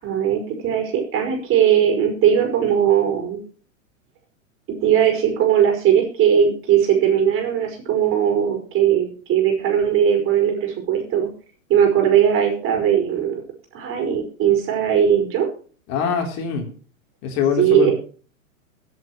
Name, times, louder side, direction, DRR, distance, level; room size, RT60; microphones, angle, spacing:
voice 1, 0.0-3.4 4.7-11.3 11.7-13.4 13.7-15.5 17.6-17.9, right 9 dB, 30° right, 2 dB, 5.3 m, -19 dB
voice 2, 15.9-16.7 17.2-17.9, left 6 dB, 40° left, 3 dB, 3.6 m, -23 dB
23.5 x 7.9 x 3.1 m, 0.42 s
figure-of-eight pair, 105°, 41 cm